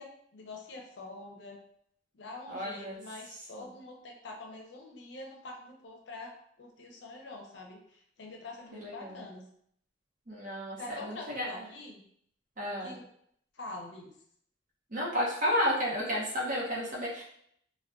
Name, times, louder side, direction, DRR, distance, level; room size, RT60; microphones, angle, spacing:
voice 1, 0.0-1.6 2.1-6.3 6.6-9.4 10.8-12.0 12.8-13.1 13.5-14.1, left 2 dB, 70° left, 0 dB, 0.6 m, -45 dB
voice 2, 2.5-3.0 3.6-3.7 8.7-9.2 10.3-11.7 12.6-12.9 14.9-17.2, equal, 45° right, -4 dB, 0.8 m, -32 dB
2.5 x 2.2 x 2.2 m, 0.68 s
head